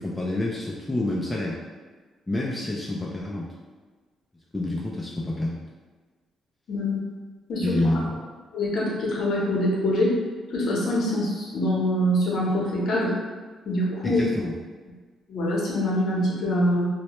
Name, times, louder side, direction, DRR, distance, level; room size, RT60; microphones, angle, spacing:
voice 1, 0.0-1.6 2.3-3.5 4.5-5.6 7.6-8.1 14.0-14.5, left 1 dB, 15° left, -4 dB, 0.3 m, -28 dB
voice 2, 6.7-7.0 7.5-7.9 8.5-10.1 10.5-13.1 13.7-14.2 15.3-16.9, left 1 dB, 65° left, -5 dB, 0.7 m, -24 dB
2.1 x 2.1 x 2.9 m, 1.4 s
cardioid pair, 90°, 0 cm